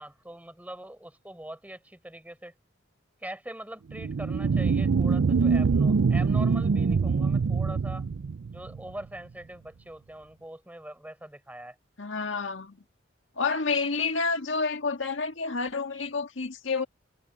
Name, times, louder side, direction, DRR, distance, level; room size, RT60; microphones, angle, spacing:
voice 1, 0.0-2.5 3.2-8.0 8.5-11.8, right 1 dB, 10° right, 4.3 m, -42 dB
sound 1, 3.9-8.9, right 5 dB, 75° right, 0.5 m, -24 dB
voice 2, 12.0-12.8 13.4-16.8, left 4 dB, 85° left, 1.7 m, -29 dB
head